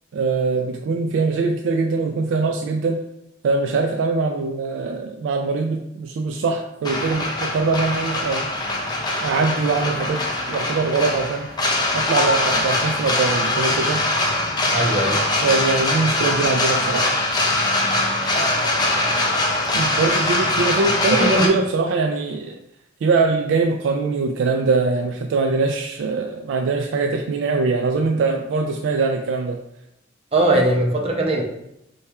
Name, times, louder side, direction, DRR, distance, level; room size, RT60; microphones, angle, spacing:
voice 1, 0.1-3.0 3.4-8.5 9.2-10.2 10.5-11.5 11.9-14.1 15.4-17.1 19.7-22.6 23.0-29.6, right 4 dB, 70° right, 4 dB, 0.3 m, -22 dB
sound 1, 6.8-21.5, left 2 dB, 20° left, 0.5 m, -22 dB
voice 2, 14.7-15.2 21.1-21.5 30.3-31.4, right 1 dB, 30° right, 0 dB, 0.7 m, -19 dB
4.1 x 2.3 x 4.5 m, 0.84 s
head